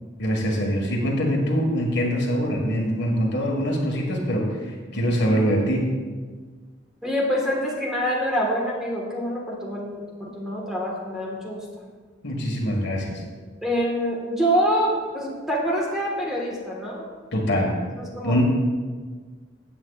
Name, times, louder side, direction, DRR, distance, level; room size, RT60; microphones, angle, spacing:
voice 1, 0.2-5.9 12.2-13.2 17.3-17.7 18.2-18.4, equal, 65° left, 0 dB, 1.6 m, -23 dB
voice 2, 7.0-11.6 13.6-17.1 17.9-18.4, equal, 5° right, -3 dB, 1.4 m, -26 dB
15.5 x 8.3 x 2.4 m, 1.5 s
head